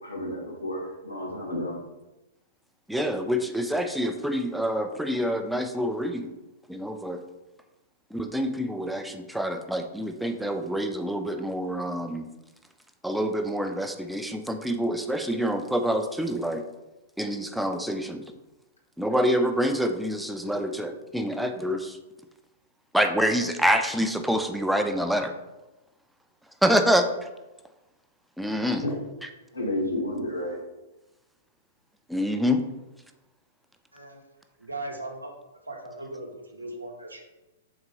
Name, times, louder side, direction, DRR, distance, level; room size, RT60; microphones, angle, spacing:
voice 1, 0.0-1.8 28.8-29.0 29.5-30.6, left 1 dB, 85° left, -1 dB, 1.1 m, -31 dB
voice 2, 2.9-6.3 6.7-7.2 8.1-12.3 13.0-16.6 17.2-18.2 19.0-22.0 22.9-25.3 26.6-27.1 28.4-28.8 32.1-32.6, equal, ahead, 6 dB, 0.3 m, -26 dB
voice 3, 33.9-34.2 34.6-35.3 35.6-37.2, right 2 dB, 90° right, 2 dB, 0.7 m, -38 dB
4.0 x 3.6 x 3.0 m, 1.0 s
figure-of-eight pair, 105°, 0 cm